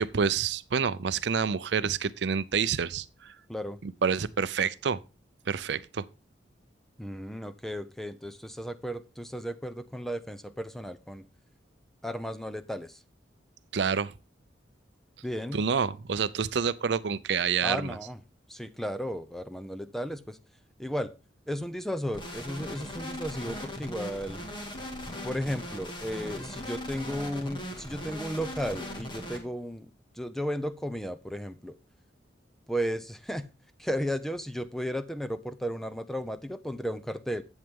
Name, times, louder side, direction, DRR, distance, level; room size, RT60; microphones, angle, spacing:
voice 1, 0.0-3.3 3.8-5.0 5.5-6.0 13.7-14.1 15.5-18.0, right 6 dB, 65° right, 0.5 m, -28 dB
voice 2, 3.5-3.8 7.0-11.2 12.0-13.0 15.2-15.6 17.6-18.2 18.5-20.4 20.8-21.1 21.5-24.4 25.2-31.8 32.7-33.5 33.8-37.4, equal, ahead, 0.6 m, -34 dB
sound 1, 22.1-29.4, left 1 dB, 25° left, 2.0 m, -39 dB
10.5 x 8.2 x 3.6 m
head